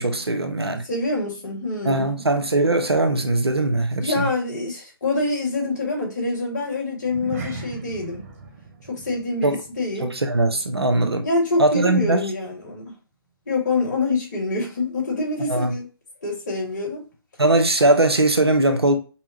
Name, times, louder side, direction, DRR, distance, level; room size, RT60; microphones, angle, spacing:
voice 1, 0.0-0.8 1.8-4.3 9.4-9.6 10.0-11.3 11.6-12.2 15.5-15.7 17.4-19.0, right 2 dB, 90° right, 0.9 m, -20 dB
voice 2, 0.9-2.1 4.0-8.2 8.9-10.2 11.2-13.0 13.5-15.9 16.2-17.1, left 2 dB, 45° left, 2.2 m, -26 dB
sound 1, 7.0-11.6 11.9-12.2 12.7-12.8, right 4 dB, 35° right, 0.9 m, -39 dB
5.5 x 2.3 x 3.0 m
figure-of-eight pair, 140°, 13 cm